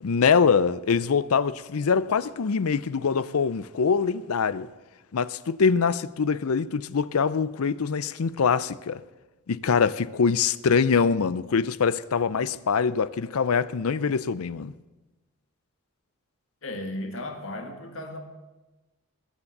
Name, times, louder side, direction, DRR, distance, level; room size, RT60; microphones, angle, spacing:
voice 1, 0.0-4.7 5.1-9.0 9.5-14.7, left 5 dB, 90° left, 0.5 m, -24 dB
voice 2, 16.6-18.2, left 1 dB, 65° left, 1.9 m, -35 dB
21.0 x 7.2 x 6.6 m
head